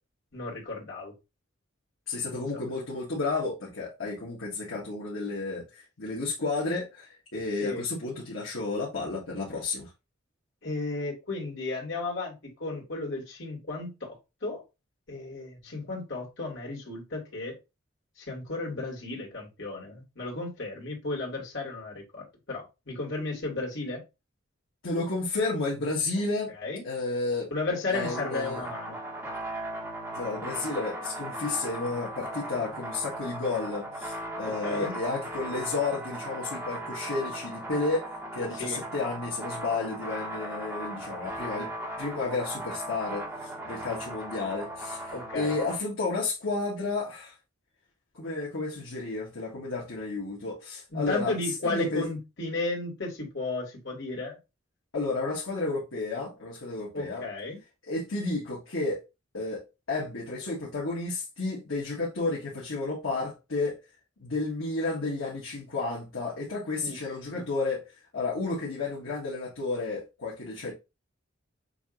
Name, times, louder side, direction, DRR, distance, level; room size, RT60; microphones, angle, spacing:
voice 1, 0.3-1.1 2.3-2.4 7.6-7.8 10.6-14.6 15.1-17.5 18.2-24.0 26.6-26.9 27.5-29.0 34.4-34.9 38.6-38.8 45.1-45.5 50.9-54.4 56.9-57.6 66.8-67.0 67.3-67.4, left 2 dB, 65° left, 2.4 m, -34 dB
voice 2, 2.1-9.9 24.8-26.5 26.8-27.5 27.9-28.6 30.1-41.7 42.0-47.3 48.1-51.3 51.6-52.1 54.9-57.2 57.9-59.0 59.3-63.8 64.2-67.8 68.1-70.7, left 3 dB, 85° left, 1.7 m, -32 dB
sound 1, 27.9-45.8, right 1 dB, 10° right, 1.6 m, -37 dB
6.9 x 2.9 x 2.6 m
head